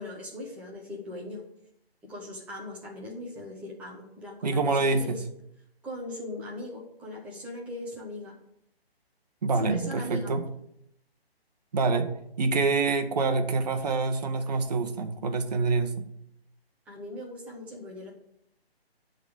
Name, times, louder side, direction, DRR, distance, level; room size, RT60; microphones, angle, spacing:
voice 1, 0.0-1.4 2.0-5.2 5.8-8.4 9.5-10.3 16.9-18.1, left 1 dB, 5° right, -4 dB, 1.0 m, -39 dB
voice 2, 4.4-5.2 9.4-10.4 11.7-12.1 12.4-16.0, right 3 dB, 40° right, 6 dB, 1.2 m, -26 dB
11.5 x 4.1 x 7.8 m, 0.76 s
hypercardioid pair, 165°, 31 cm